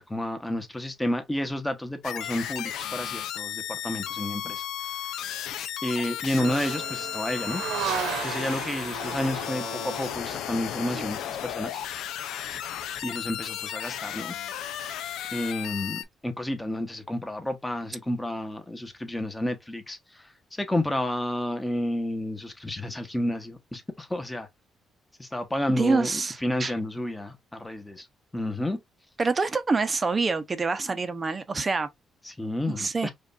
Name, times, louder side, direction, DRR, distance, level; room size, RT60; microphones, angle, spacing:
voice 1, 0.0-4.7 5.0-5.1 5.8-7.6 8.2-11.8 13.0-14.3 15.3-20.2 20.5-24.5 25.2-28.1 28.3-28.8 30.9-31.0 32.2-33.1, left 1 dB, 10° left, 1.1 m, -31 dB
sound 1, 2.0-16.0, left 11 dB, 85° left, 0.5 m, -34 dB
sound 2, 6.4-11.3, right 6 dB, 85° right, 1.2 m, -35 dB
voice 2, 25.7-26.7 29.2-31.9 32.7-33.1, right 4 dB, 30° right, 0.7 m, -26 dB
5.0 x 2.5 x 2.5 m
cardioid pair, 90°, 0 cm